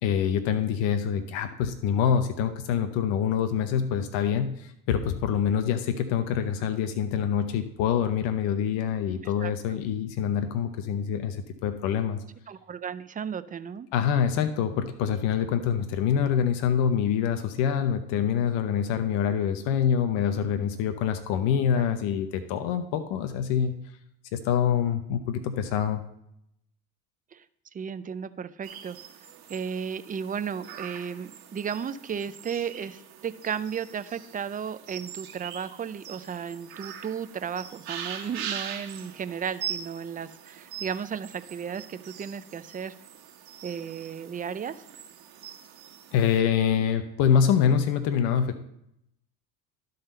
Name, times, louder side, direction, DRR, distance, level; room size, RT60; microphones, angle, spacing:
voice 1, 0.0-12.2 13.9-23.8 24.3-26.0 46.1-48.6, left 8 dB, 80° left, 8 dB, 0.9 m, -25 dB
voice 2, 12.5-13.9 21.7-21.8 27.3-27.4 27.7-29.0 29.5-42.9 43.6-44.8, right 7 dB, 20° right, 13 dB, 0.4 m, -34 dB
sound 1, 28.6-46.4, right 9 dB, 55° right, 1.4 m, -42 dB
12.0 x 4.0 x 5.4 m, 0.77 s
supercardioid pair, 90°, 44 cm